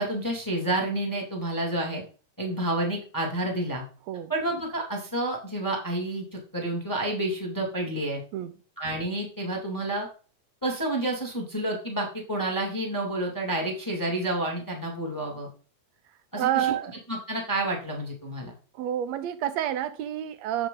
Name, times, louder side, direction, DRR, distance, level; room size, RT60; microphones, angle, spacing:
voice 1, 0.0-2.0 2.4-3.8 4.3-8.2 8.8-10.1 10.6-15.5 16.3-16.7 17.1-18.5, right 1 dB, 10° left, 1.6 m, -29 dB
voice 2, 16.3-16.9 18.8-20.7, right 11 dB, 75° right, 1.7 m, -28 dB
7.7 x 7.1 x 3.8 m
omnidirectional pair, 3.4 m